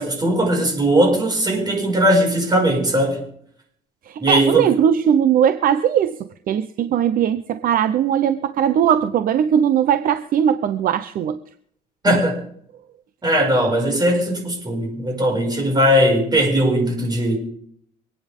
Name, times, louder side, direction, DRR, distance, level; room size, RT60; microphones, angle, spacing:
voice 1, 0.0-3.2 4.2-4.7 12.0-12.4 13.2-17.4, right 1 dB, 25° right, 1 dB, 5.8 m, -19 dB
voice 2, 4.1-6.2 6.5-11.4 12.1-12.2, right 9 dB, 60° right, 11 dB, 0.8 m, -19 dB
26.0 x 9.6 x 3.7 m, 0.66 s
cardioid pair, 110°, 17 cm